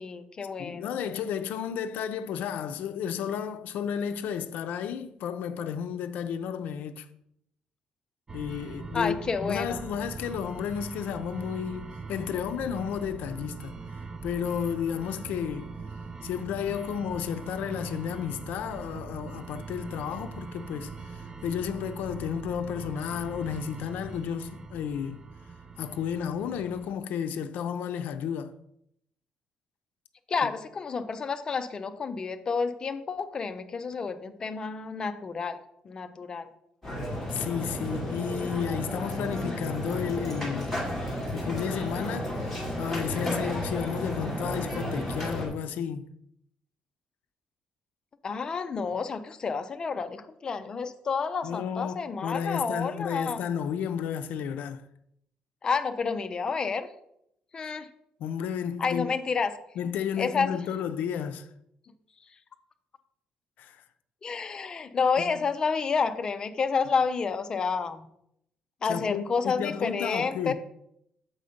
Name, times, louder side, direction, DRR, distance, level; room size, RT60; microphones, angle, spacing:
voice 1, 0.0-0.9 8.9-9.8 30.3-35.6 35.8-36.5 48.2-53.4 55.6-56.9 57.5-57.9 58.8-59.5 60.2-60.6 64.2-68.1 68.8-70.5, left 5 dB, 25° left, 0.5 m, -30 dB
voice 2, 0.6-7.1 8.3-13.7 14.2-15.7 16.2-25.2 25.8-28.5 30.4-30.5 37.3-40.7 41.3-46.1 51.4-54.8 57.6-57.7 58.2-59.1 59.8-61.5 63.6-63.8 65.2-65.3 68.9-70.5, left 8 dB, 75° left, 0.5 m, -32 dB
sound 1, 8.3-26.9, right 4 dB, 20° right, 0.5 m, -41 dB
sound 2, 36.8-45.5, equal, ahead, 2.6 m, -33 dB
7.5 x 4.0 x 5.0 m
cardioid pair, 165°, 3 cm